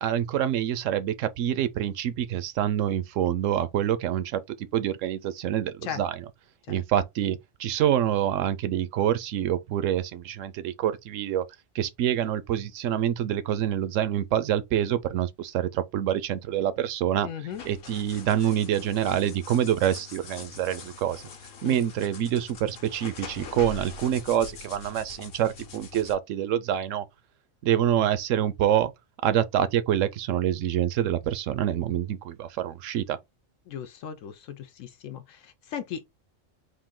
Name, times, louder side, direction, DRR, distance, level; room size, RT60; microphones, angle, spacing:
voice 1, 0.0-6.2 6.7-11.4 11.7-17.3 17.6-21.2 21.6-27.1 27.6-28.9 29.2-33.2, right 10 dB, 75° right, 0.9 m, -26 dB
voice 2, 17.2-17.6 21.6-21.8 33.7-36.1, left 8 dB, 80° left, 1.0 m, -37 dB
sound 1, 17.5-26.1, left 5 dB, 55° left, 0.9 m, -43 dB
3.7 x 2.6 x 3.6 m
omnidirectional pair, 1.3 m